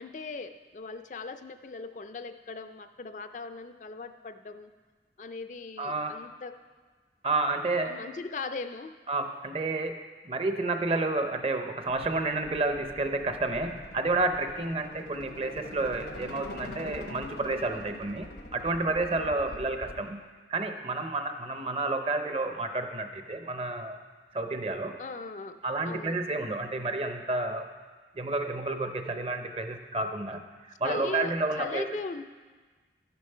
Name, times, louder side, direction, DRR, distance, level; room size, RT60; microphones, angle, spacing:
voice 1, 0.0-4.7 5.2-6.5 7.8-8.9 19.5-19.6 25.0-25.6 25.8-26.2 30.8-32.2, left 3 dB, 45° left, 9 dB, 0.4 m, -39 dB
voice 2, 5.8-6.3 7.2-8.1 9.1-18.3 18.5-24.0 24.3-25.0 25.6-27.7 28.2-31.9, right 2 dB, 35° right, 7 dB, 0.6 m, -30 dB
sound 1, 11.9-20.0, left 1 dB, 80° left, 0.9 m, -44 dB
11.5 x 6.9 x 5.5 m, 1.4 s
head